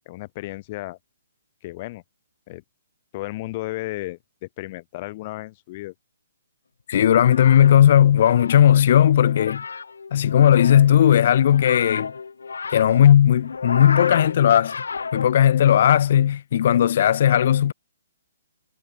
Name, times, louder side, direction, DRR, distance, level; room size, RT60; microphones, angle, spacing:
voice 1, 0.1-1.0 1.6-2.0 2.5-2.6 3.1-5.9, left 19 dB, 35° left, 1.1 m, -34 dB
voice 2, 6.9-9.6 10.1-12.1 12.7-14.8 15.1-17.7, left 10 dB, 50° left, 0.6 m, -16 dB
sound 1, 7.1-15.7, left 5 dB, 80° left, 1.0 m, -33 dB
hypercardioid pair, 140°, 0 cm